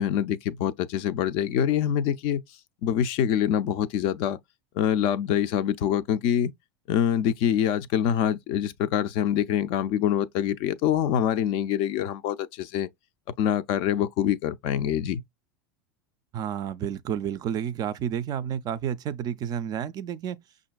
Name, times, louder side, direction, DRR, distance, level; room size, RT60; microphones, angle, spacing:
voice 1, 0.0-2.4 2.8-4.4 4.8-6.5 6.9-12.9 13.4-15.2, left 9 dB, 50° left, 0.4 m, -25 dB
voice 2, 16.3-20.4, right 9 dB, 35° right, 0.4 m, -30 dB
5.7 x 2.5 x 2.2 m
supercardioid pair, 115°, 12 cm